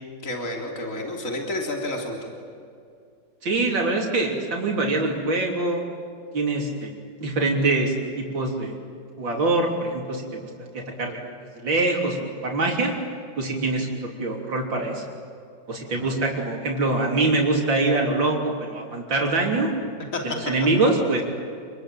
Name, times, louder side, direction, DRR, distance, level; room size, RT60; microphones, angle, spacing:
voice 1, 0.2-2.3 16.0-16.1 20.1-20.2, left 1 dB, 45° left, 1 dB, 3.9 m, -30 dB
voice 2, 3.4-5.8 6.3-6.9 7.2-8.7 9.2-10.5 11.0-11.2 11.6-12.2 12.4-12.9 13.4-15.0 15.7-19.7 20.2-21.2, right 2 dB, 90° right, -1 dB, 4.1 m, -24 dB
29.0 x 22.5 x 9.1 m, 2.4 s
omnidirectional pair, 2.0 m